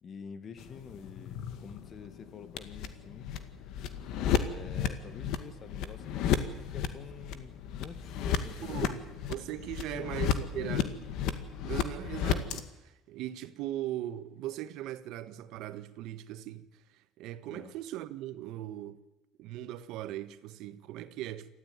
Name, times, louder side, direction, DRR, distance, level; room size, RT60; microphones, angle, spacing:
voice 1, 0.0-3.3 4.4-9.0 9.9-11.0 17.5-17.7, left 6 dB, 35° left, 1.9 m, -47 dB
sound 1, 0.6-12.6, left 8 dB, 60° left, 1.9 m, -34 dB
voice 2, 8.6-11.0 11.6-19.0 19.4-21.5, right 13 dB, 65° right, 1.4 m, -39 dB
28.0 x 14.5 x 9.6 m
cardioid pair, 150°, 0 cm